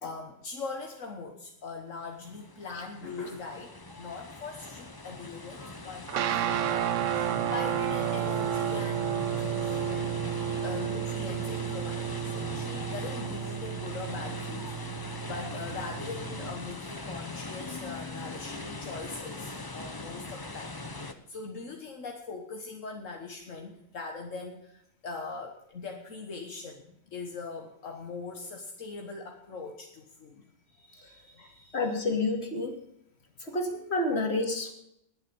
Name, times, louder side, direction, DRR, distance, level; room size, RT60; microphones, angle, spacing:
voice 1, 0.0-10.1 10.4-32.0 34.0-34.2, left 4 dB, 75° left, 2 dB, 1.8 m, -41 dB
sound 1, 2.1-21.1, left 2 dB, 20° left, 1.0 m, -40 dB
sound 2, 6.1-16.6, right 10 dB, 75° right, 1.0 m, -32 dB
voice 2, 31.7-32.8 33.4-34.7, left 2 dB, 55° left, 3 dB, 2.8 m, -29 dB
20.5 x 7.4 x 5.4 m, 0.76 s
omnidirectional pair, 1.3 m